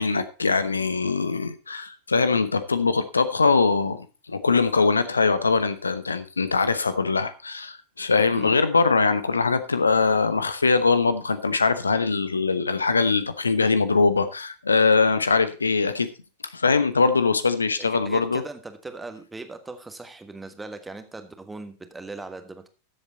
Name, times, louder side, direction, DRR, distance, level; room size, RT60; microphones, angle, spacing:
voice 1, 0.0-16.1 16.5-18.4, left 4 dB, 75° left, 13 dB, 0.9 m, -22 dB
voice 2, 17.8-22.7, right 3 dB, 10° right, 8 dB, 1.5 m, -39 dB
13.5 x 7.8 x 4.1 m, 0.33 s
figure-of-eight pair, 90°, 0 cm